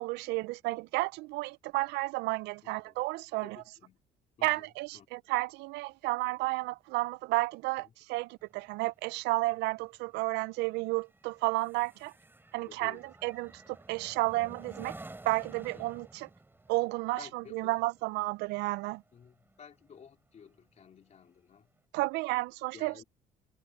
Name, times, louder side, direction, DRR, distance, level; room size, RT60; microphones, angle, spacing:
voice 1, 0.0-3.6 4.4-12.1 12.5-15.0 15.2-16.3 16.7-19.0 21.9-23.0, right 21 dB, 90° right, 0.4 m, -32 dB
voice 2, 2.6-3.0 3.4-4.0 4.4-5.1 7.8-7.9 12.6-13.1 15.7-15.9 17.2-17.8 19.1-21.7 22.7-23.0, left 7 dB, 40° left, 3.7 m, -54 dB
sound 1, 8.4-20.1 20.5-20.8, right 2 dB, 10° right, 7.0 m, -52 dB
cardioid pair, 110°, 17 cm